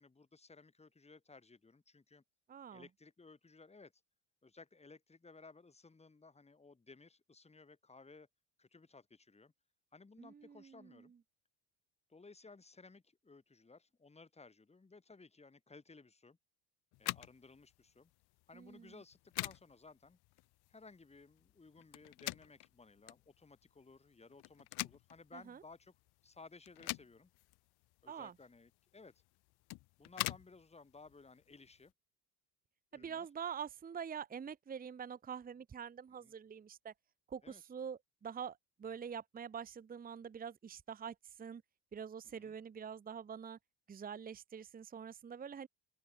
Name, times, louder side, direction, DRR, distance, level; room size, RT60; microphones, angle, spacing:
voice 1, 0.0-2.2 2.7-3.9 4.4-8.3 8.6-9.5 9.9-11.1 12.1-16.4 17.0-18.1 18.5-20.2 20.7-25.9 26.2-27.3 28.0-29.1 30.0-31.9 32.9-33.3 36.2-36.3 37.4-37.6 42.2-42.5, left 3 dB, 15° left, 6.6 m, -58 dB
voice 2, 2.5-2.8 10.2-11.0 18.5-18.9 25.3-25.6 28.1-28.3 32.9-36.9 37.3-41.6 41.9-43.6 43.9-45.7, right 7 dB, 20° right, 1.0 m, -45 dB
sound 1, 16.9-31.9, left 21 dB, 60° left, 1.0 m, -46 dB
open air
cardioid pair, 130°, 43 cm